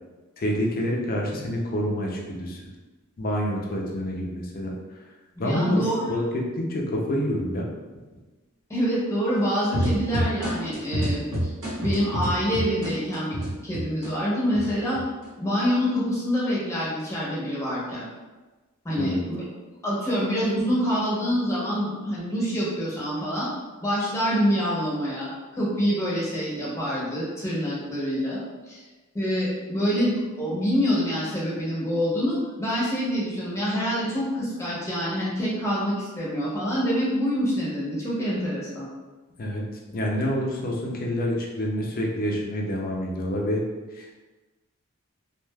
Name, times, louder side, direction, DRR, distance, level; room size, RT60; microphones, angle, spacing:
voice 1, 0.4-2.6 3.2-4.7 5.4-7.7 19.0-19.2 39.4-39.6 39.9-43.6 44.0-44.2, equal, 45° left, -1 dB, 0.5 m, -27 dB
voice 2, 5.4-6.0 8.7-11.5 11.8-13.4 13.6-15.0 15.4-18.0 18.8-19.4 19.8-23.5 23.8-28.8 29.1-38.9, equal, 15° left, -7 dB, 0.8 m, -26 dB
sound 1, 9.7-14.1 14.5-15.3, equal, 85° right, 1.4 m, -27 dB
3.2 x 2.4 x 2.2 m, 1.2 s
head